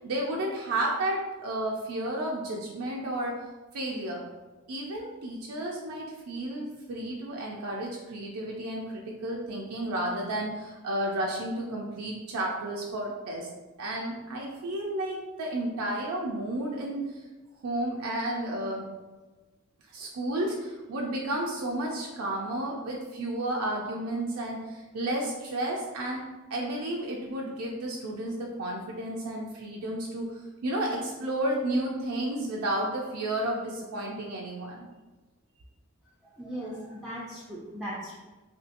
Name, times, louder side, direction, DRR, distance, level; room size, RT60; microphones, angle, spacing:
voice 1, 0.0-3.4 3.7-4.2 4.7-13.5 13.8-17.2 17.6-18.9 19.9-26.2 26.5-34.9, right 1 dB, 80° right, -2 dB, 0.4 m, -32 dB
voice 2, 36.3-38.4, equal, ahead, -7 dB, 0.3 m, -38 dB
3.1 x 2.6 x 2.5 m, 1.2 s
head